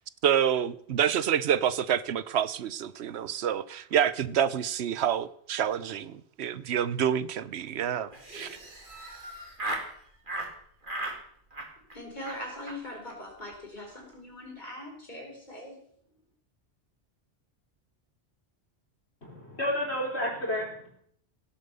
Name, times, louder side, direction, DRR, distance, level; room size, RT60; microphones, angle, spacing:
voice 1, 0.2-8.6, right 9 dB, 75° right, 1.0 m, -28 dB
Laughter, 8.1-9.9 10.3-10.5 10.8-11.2 11.5-12.0 12.2-12.4 12.7-12.8 13.0-13.1 13.4-13.5 13.8-14.1, right 2 dB, 50° right, 2.5 m, -37 dB
voice 2, 11.9-15.8, left 1 dB, 45° left, 4.7 m, -41 dB
voice 3, 19.2-20.9, left 1 dB, 70° left, 4.7 m, -31 dB
17.0 x 7.6 x 6.8 m
omnidirectional pair, 1.1 m